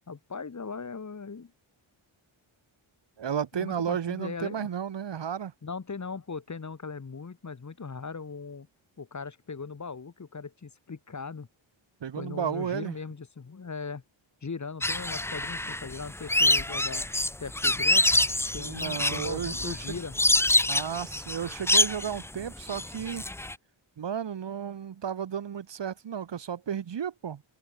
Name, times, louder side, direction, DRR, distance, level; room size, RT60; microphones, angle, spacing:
voice 1, 0.1-1.5 3.6-4.7 5.6-8.7 9.0-11.5 12.2-14.0 14.4-17.1 17.4-18.1 18.5-20.2, left 5 dB, 35° left, 2.8 m, -39 dB
voice 2, 3.2-5.5 12.0-12.9 18.5-20.0 20.7-23.2 24.0-27.4, right 8 dB, 60° right, 1.6 m, -33 dB
sound 1, 14.8-23.5, left 1 dB, 5° left, 0.4 m, -26 dB
open air
wide cardioid pair, 145°, 49 cm